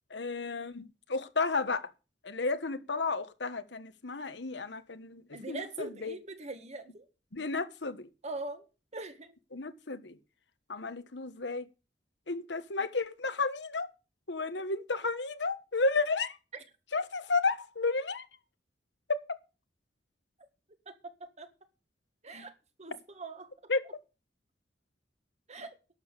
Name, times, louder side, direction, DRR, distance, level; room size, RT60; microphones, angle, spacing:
voice 1, 0.1-1.9 2.2-6.2 7.3-8.1 9.5-10.2 10.7-11.7 12.3-13.9 14.3-16.4 16.9-18.3 19.1-19.2 23.7-23.8, left 3 dB, 75° left, 1.3 m, -32 dB
voice 2, 5.3-7.0 8.2-8.6 8.9-9.3 21.2-21.5 22.2-22.5 22.8-23.5 25.5-25.7, right 2 dB, 40° right, 1.8 m, -41 dB
11.5 x 7.2 x 8.2 m
head